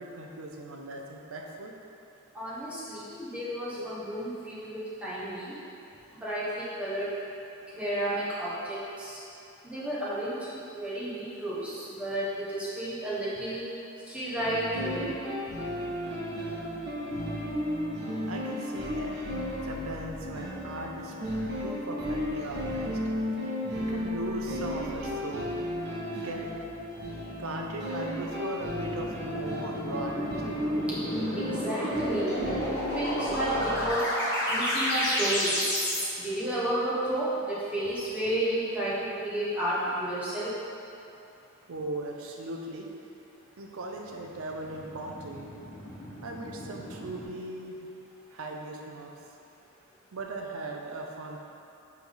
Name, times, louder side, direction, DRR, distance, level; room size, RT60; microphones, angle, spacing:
voice 1, 0.0-1.7 18.3-19.2 19.6-21.1 21.6-23.0 23.3-25.5 26.2-26.6 27.4-30.6 41.7-42.9 43.6-45.5 46.2-47.8 48.3-49.2 50.1-51.4, right 2 dB, 70° right, 1 dB, 0.6 m, -38 dB
voice 2, 2.3-5.5 6.2-7.1 7.7-9.2 9.6-13.6 14.0-15.1 30.9-31.0 31.3-34.1 34.5-35.6 36.2-40.5, right 1 dB, 5° right, -10 dB, 1.2 m, -32 dB
sound 1, 14.4-33.9, left 1 dB, 50° right, 1.5 m, -34 dB
sound 2, 28.8-36.0 44.3-47.2, equal, 50° left, 1.4 m, -32 dB
7.3 x 3.5 x 3.9 m, 2.8 s
head